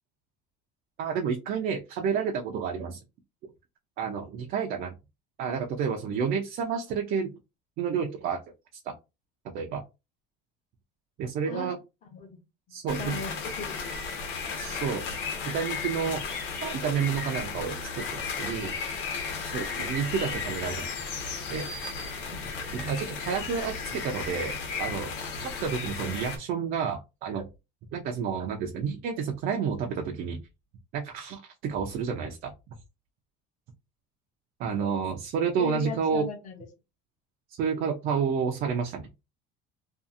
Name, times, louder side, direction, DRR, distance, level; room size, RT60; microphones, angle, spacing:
voice 1, 1.0-3.0 4.0-4.9 5.4-7.3 7.8-8.4 8.8-8.9 9.5-9.8 11.2-11.8 12.7-13.2 14.6-15.1 15.5-16.2 16.6-18.8 19.4-20.9 21.5-21.7 22.7-24.5 24.8-25.1 25.4-27.5 27.9-30.4 30.9-32.5 34.6-36.3 37.5-39.1, right 6 dB, 45° right, 0.5 m, -30 dB
sound 1, 12.9-26.4, left 5 dB, 70° left, 1.0 m, -34 dB
voice 2, 13.0-14.0 35.6-36.7, left 4 dB, 40° left, 0.7 m, -37 dB
2.6 x 2.4 x 2.4 m
cardioid pair, 155°, 20 cm